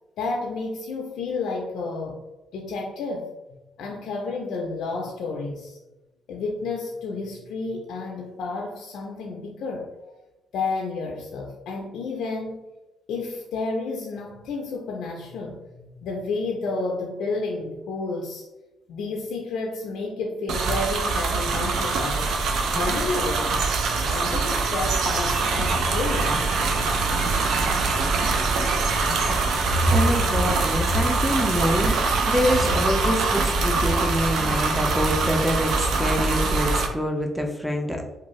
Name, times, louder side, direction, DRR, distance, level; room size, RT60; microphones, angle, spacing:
voice 1, 0.2-2.2 2.5-3.3 3.8-5.8 6.3-10.2 10.5-12.6 13.1-18.5 18.9-22.3 22.7-23.6 24.0-26.4, left 3 dB, 80° left, 0 dB, 0.4 m, -31 dB
sound 1, 20.5-36.9, right 3 dB, 75° right, 0.4 m, -24 dB
voice 2, 29.8-38.0, equal, ahead, 2 dB, 0.5 m, -25 dB
2.6 x 2.3 x 3.0 m, 1.0 s
cardioid pair, 90°, 0 cm